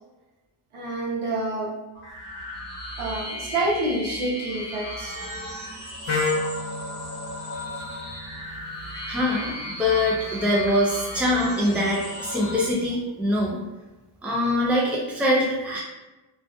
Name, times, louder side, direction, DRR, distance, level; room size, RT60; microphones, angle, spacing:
voice 1, 0.7-1.8 3.0-5.2 8.9-9.1, right 2 dB, 80° right, -3 dB, 0.8 m, -28 dB
sound 1, 1.9-12.6, equal, 20° left, 1.0 m, -36 dB
Wind instrument woodwind instrument, 6.0-9.9, left 3 dB, 90° left, 0.8 m, -32 dB
voice 2, 9.1-13.6 14.2-15.8, left 1 dB, 5° right, -5 dB, 0.5 m, -23 dB
2.5 x 2.5 x 2.3 m, 1.0 s
wide cardioid pair, 145°, 48 cm